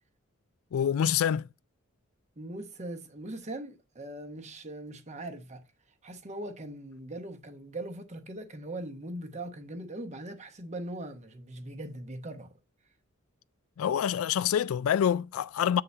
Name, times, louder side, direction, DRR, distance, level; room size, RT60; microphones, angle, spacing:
voice 1, 0.7-1.5 13.8-15.8, left 9 dB, 75° left, 0.3 m, -26 dB
voice 2, 2.4-5.6 6.0-12.6, right 1 dB, 35° right, 1.0 m, -40 dB
8.2 x 3.8 x 4.2 m
head